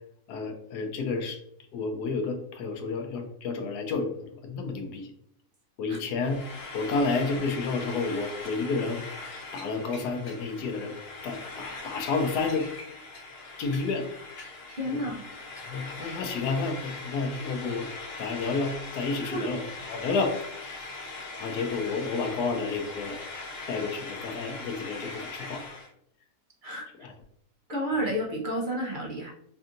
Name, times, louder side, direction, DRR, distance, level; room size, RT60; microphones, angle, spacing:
voice 1, 0.3-1.4 1.7-4.1 4.4-5.1 5.8-6.4 6.7-9.0 9.5-11.0 11.2-13.0 13.6-14.1 14.9-15.0 15.7-17.9 18.2-19.6 19.9-20.9 21.4-23.2 23.7-25.7 27.0-27.1, left 4 dB, 90° left, 5 dB, 1.2 m, -30 dB
Frying (food), 6.2-25.9, left 3 dB, 60° left, 0.6 m, -41 dB
voice 2, 14.7-15.2 19.3-19.5 26.6-26.9 27.7-29.3, equal, 45° right, -2 dB, 0.7 m, -31 dB
5.4 x 2.6 x 2.5 m, 0.72 s
omnidirectional pair, 1.7 m